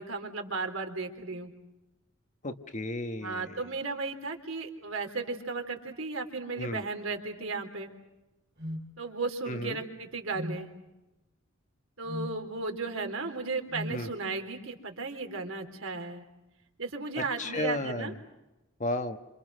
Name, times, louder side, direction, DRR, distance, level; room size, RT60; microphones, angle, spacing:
voice 1, 0.0-1.5 3.2-7.9 9.0-10.7 12.0-16.3 16.8-18.1, right 3 dB, 75° right, 4 dB, 3.7 m, -35 dB
voice 2, 2.4-3.6 6.5-6.8 9.5-9.8 13.9-14.1 17.2-18.1 18.8-19.2, left 1 dB, 35° left, 7 dB, 1.4 m, -33 dB
sound 1, 8.6-8.9 10.3-10.6 12.1-12.4 13.7-14.0, equal, 55° right, 3.9 m, -37 dB
29.5 x 27.0 x 6.3 m, 1.0 s
head